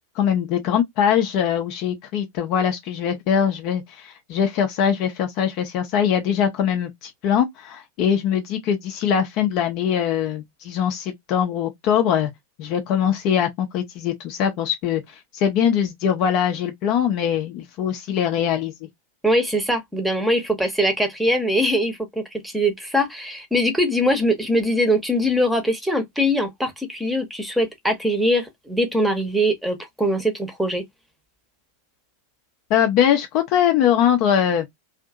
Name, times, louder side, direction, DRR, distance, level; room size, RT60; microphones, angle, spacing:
voice 1, 0.2-12.3 12.6-15.0 15.3-18.9 32.7-34.7, left 9 dB, 40° left, 0.5 m, -22 dB
voice 2, 19.2-30.8, equal, 5° right, 0.8 m, -22 dB
2.6 x 2.5 x 2.3 m
figure-of-eight pair, 90°, 0 cm